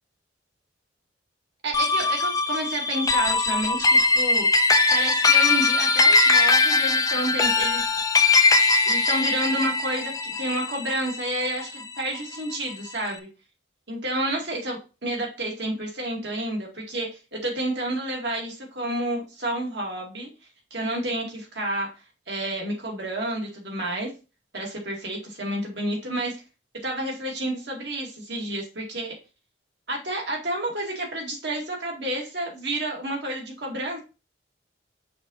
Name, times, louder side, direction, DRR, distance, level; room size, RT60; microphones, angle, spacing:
voice 1, 1.6-7.9 8.9-13.3 13.9-20.3 20.7-21.9 22.3-24.1 24.5-26.4 26.8-29.1 29.9-34.0, right 1 dB, 60° right, -1 dB, 2.3 m, -30 dB
sound 1, 1.7-12.3, left 3 dB, 20° left, 0.5 m, -21 dB
6.0 x 3.8 x 4.1 m, 0.32 s
head